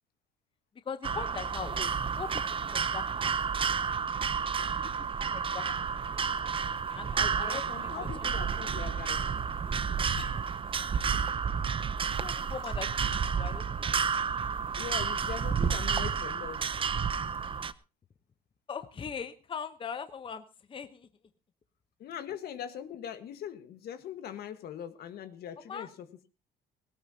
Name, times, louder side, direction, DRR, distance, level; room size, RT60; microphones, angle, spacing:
voice 1, 0.8-2.3 2.6-3.0 3.6-3.8 4.8-4.9 5.2-5.6 6.1-6.3 6.9-8.3 10.2-10.4 12.1-12.9 13.4-13.9 18.7-21.1 25.7-25.9, left 6 dB, 30° left, 10 dB, 0.9 m, -40 dB
sound 1, 1.0-17.7, right 6 dB, 30° right, 0.7 m, -31 dB
voice 2, 7.4-9.2 14.8-16.6 22.0-25.9, left 9 dB, 65° left, 10 dB, 1.5 m, -41 dB
18.0 x 18.0 x 2.9 m, 0.32 s
cardioid pair, 110°, 17 cm